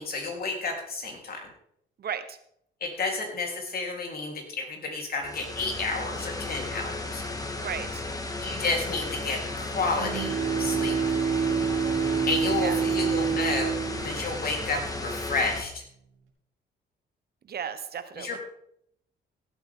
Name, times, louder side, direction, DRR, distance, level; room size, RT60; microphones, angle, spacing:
voice 1, 0.0-1.5 2.8-7.2 8.4-10.3 10.6-11.0 12.3-15.8 18.2-18.4, left 3 dB, 50° left, 1 dB, 3.8 m, -31 dB
voice 2, 2.0-2.4 7.6-8.0 12.6-12.8 17.5-18.4, right 7 dB, 50° right, 10 dB, 1.1 m, -34 dB
sound 1, 5.2-15.6, left 2 dB, 20° left, 1.8 m, -34 dB
Bowed string instrument, 9.6-15.1, right 6 dB, 85° right, 3.4 m, -28 dB
16.5 x 8.4 x 3.8 m, 0.71 s
cardioid pair, 90°, 20 cm